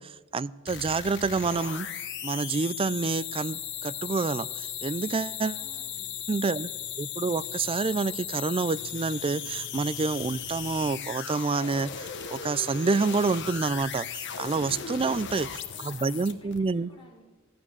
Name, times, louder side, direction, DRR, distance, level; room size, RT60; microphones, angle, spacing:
voice 1, 0.0-1.9 2.2-5.6 6.3-6.7 7.0-15.5 15.8-16.9, right 4 dB, 25° right, 0.4 m, -28 dB
sound 1, 0.7-16.6, left 8 dB, 60° left, 1.2 m, -37 dB
voice 2, 5.2-6.1 15.0-17.2, equal, 25° left, 4.7 m, -54 dB
15.0 x 12.0 x 7.3 m
head